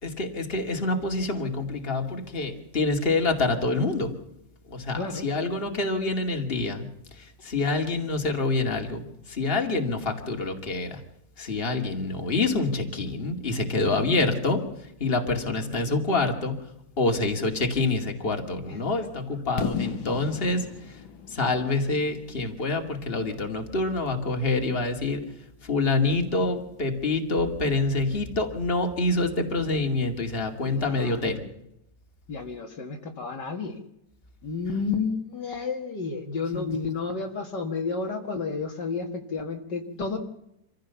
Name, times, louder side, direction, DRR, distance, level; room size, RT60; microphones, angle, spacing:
voice 1, 0.0-4.1 4.7-6.9 7.1-11.0 11.4-14.6 15.0-16.5 17.0-21.0 21.3-25.2 25.6-31.4 36.5-36.6, left 3 dB, 30° left, 4 dB, 2.6 m, -26 dB
voice 2, 15.3-15.9 18.7-18.8 30.6-31.3 32.3-33.8 34.4-40.2, left 4 dB, 65° left, 3 dB, 2.4 m, -31 dB
Fireworks, 19.6-23.4, left 7 dB, 90° left, 2.2 m, -35 dB
26.0 x 15.5 x 7.0 m, 0.81 s
omnidirectional pair, 2.0 m